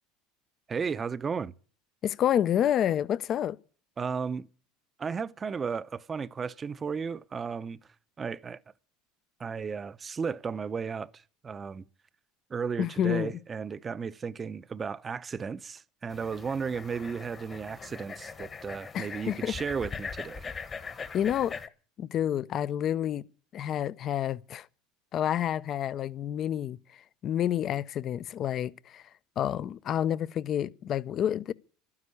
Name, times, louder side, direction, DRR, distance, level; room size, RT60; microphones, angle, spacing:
voice 1, 0.7-1.5 4.0-4.5 5.0-7.8 8.2-8.6 9.4-11.8 12.5-20.4, right 6 dB, 30° right, 0.7 m, -34 dB
voice 2, 2.0-3.6 12.8-13.3 18.9-19.5 21.1-21.6 22.0-23.2 23.5-24.7 25.1-29.0 29.4-31.5, left 10 dB, 45° left, 0.6 m, -29 dB
sound 1, 16.1-21.7, left 5 dB, 30° left, 1.2 m, -41 dB
12.0 x 9.7 x 9.9 m
supercardioid pair, 95°, 0 cm